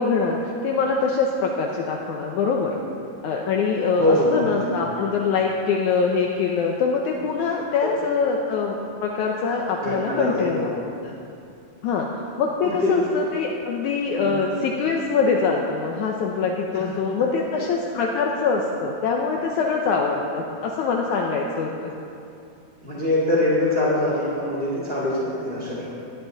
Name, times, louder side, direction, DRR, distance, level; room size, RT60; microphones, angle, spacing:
voice 1, 0.0-2.7 3.2-10.7 11.0-11.1 11.8-12.1 12.4-21.9, left 5 dB, 75° left, 0 dB, 2.1 m, -24 dB
voice 2, 4.0-4.7 7.8-8.0 9.8-10.6 12.6-13.0 14.2-14.6 16.7-16.8 22.8-26.0, left 1 dB, 20° left, -6 dB, 2.5 m, -23 dB
18.5 x 11.5 x 4.0 m, 2.6 s
omnidirectional pair, 3.9 m